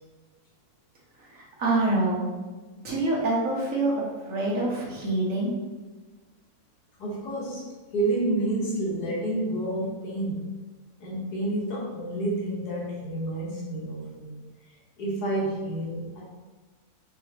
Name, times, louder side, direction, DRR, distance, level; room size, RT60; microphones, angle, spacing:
voice 1, 1.3-2.3 2.8-3.9 4.3-5.5, right 2 dB, 60° right, -4 dB, 1.5 m, -26 dB
voice 2, 7.0-10.5 11.0-14.4 14.7-16.2, right 1 dB, 80° left, -4 dB, 1.8 m, -29 dB
5.6 x 3.1 x 2.9 m, 1.3 s
omnidirectional pair, 1.7 m